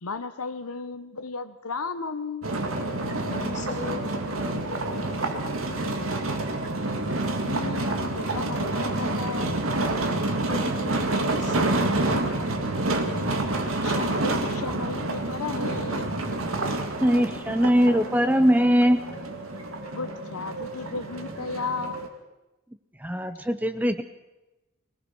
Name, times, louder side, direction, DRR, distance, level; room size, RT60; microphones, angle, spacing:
voice 1, 0.0-2.5 7.4-9.6 13.8-16.1 19.9-22.0, left 4 dB, 90° left, 9 dB, 1.1 m, -34 dB
sound 1, 2.4-22.1, right 2 dB, 65° right, 2.5 m, -28 dB
voice 2, 3.2-5.8 10.4-12.7 13.1-13.6, left 3 dB, 35° left, 4 dB, 3.2 m, -40 dB
voice 3, 17.0-19.0 23.0-24.0, equal, 10° right, 10 dB, 0.7 m, -21 dB
24.0 x 18.5 x 6.2 m, 1.0 s
head